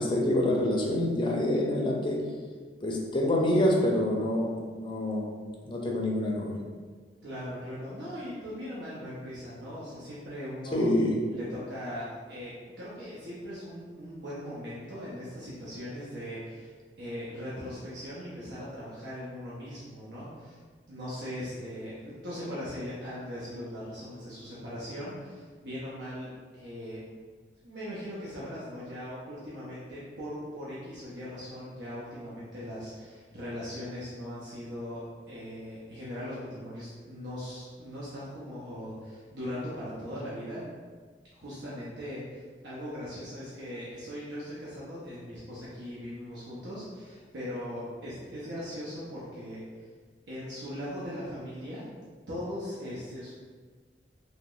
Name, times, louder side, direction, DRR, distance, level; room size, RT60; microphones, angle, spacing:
voice 1, 0.0-2.2 2.8-5.3 5.6-6.6 10.7-11.2, left 1 dB, 30° left, -1 dB, 0.5 m, -26 dB
voice 2, 7.2-10.9 11.3-16.7 17.0-20.6 20.9-27.0 27.6-40.6 41.3-49.6 50.3-51.9 52.3-53.3, equal, 85° right, -9 dB, 0.7 m, -39 dB
2.9 x 2.1 x 3.7 m, 1.6 s
head